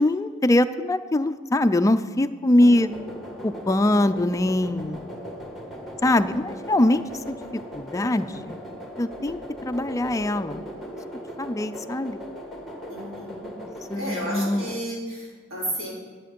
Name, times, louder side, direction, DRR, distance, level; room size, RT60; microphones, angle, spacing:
voice 1, 0.0-2.9 3.4-5.0 6.0-7.4 7.7-8.6 9.0-10.6 11.4-12.2 13.9-14.7, left 1 dB, 15° left, 10 dB, 0.3 m, -22 dB
voice 2, 2.5-2.9 12.9-13.5 13.9-15.9, equal, 75° right, -7 dB, 3.8 m, -33 dB
sound 1, 2.6-14.8, equal, ahead, 1.3 m, -38 dB
10.0 x 8.2 x 5.2 m, 1.5 s
head